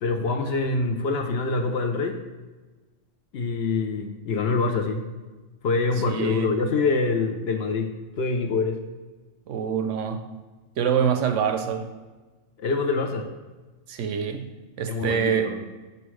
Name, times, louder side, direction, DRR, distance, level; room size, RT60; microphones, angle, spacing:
voice 1, 0.0-2.2 3.3-5.0 5.6-8.8 12.6-13.3 14.9-15.6, left 4 dB, 60° left, 4 dB, 0.7 m, -25 dB
voice 2, 6.1-6.5 9.5-10.2 10.8-11.9 13.9-14.5 14.8-15.6, right 7 dB, 75° right, 7 dB, 0.9 m, -25 dB
5.8 x 5.5 x 3.1 m, 1.3 s
omnidirectional pair, 1.3 m